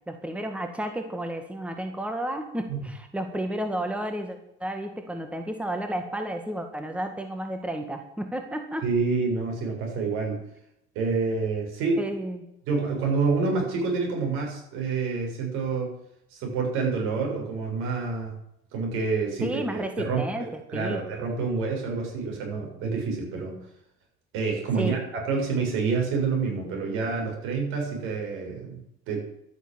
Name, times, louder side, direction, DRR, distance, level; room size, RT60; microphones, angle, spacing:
voice 1, 0.1-8.9 12.0-12.5 19.4-21.0 24.8-25.0, right 1 dB, 5° right, 6 dB, 1.9 m, -32 dB
voice 2, 8.8-10.4 11.0-12.0 12.7-15.9 16.3-18.3 18.7-23.6 24.3-25.0 25.2-28.8 29.1-29.2, right 4 dB, 80° right, 1 dB, 7.1 m, -28 dB
12.5 x 10.0 x 8.9 m, 0.78 s
cardioid pair, 115°, 21 cm